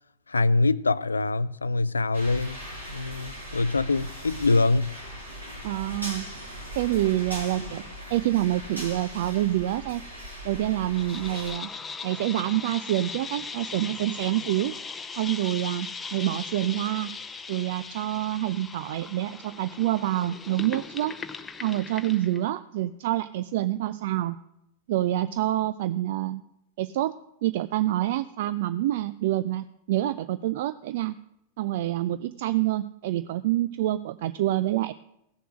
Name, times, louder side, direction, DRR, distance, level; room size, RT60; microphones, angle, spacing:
voice 1, 0.3-2.6 2.9-5.0, left 3 dB, 75° left, 0.4 m, -24 dB
sound 1, 2.1-11.5, equal, 80° right, 5.2 m, -39 dB
voice 2, 5.6-6.3 6.8-7.8 8.1-10.0 10.4-11.7 12.0-14.7 15.2-17.1 17.5-21.2 21.6-24.4 24.9-26.4 26.8-27.1 27.4-31.1 31.6-34.9, right 14 dB, 55° right, 0.4 m, -27 dB
sound 2, 10.9-22.4, left 5 dB, 15° left, 0.7 m, -39 dB
16.5 x 6.7 x 6.3 m
figure-of-eight pair, 90°, 0 cm